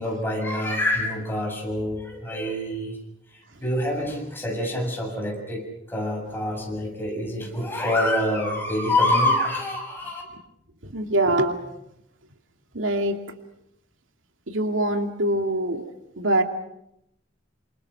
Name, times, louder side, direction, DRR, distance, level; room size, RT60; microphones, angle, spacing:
voice 1, 0.0-3.0 3.3-5.6 5.9-10.2, left 1 dB, 10° left, 0 dB, 7.2 m, -26 dB
voice 2, 10.8-11.6 12.7-13.2 14.5-15.9 16.2-16.4, right 1 dB, 85° right, 5 dB, 2.5 m, -23 dB
28.5 x 27.0 x 5.9 m, 0.80 s
head